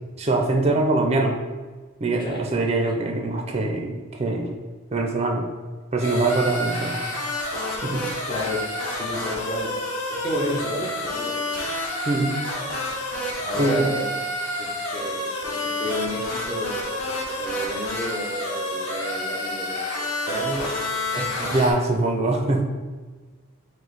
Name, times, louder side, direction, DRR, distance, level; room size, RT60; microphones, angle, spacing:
voice 1, 0.2-1.4 2.0-4.5 4.9-5.4 5.9-7.0 7.8-8.1 12.1-12.4 13.5-13.8 21.4-22.6, right 2 dB, 30° right, 2 dB, 0.4 m, -23 dB
sound 1, 6.0-21.7, left 1 dB, 85° left, 0.9 m, -29 dB
voice 2, 8.3-9.8 10.1-11.7 13.4-14.2 14.6-16.8 17.3-21.6, left 1 dB, 20° left, -3 dB, 0.7 m, -32 dB
4.9 x 2.1 x 4.0 m, 1.4 s
head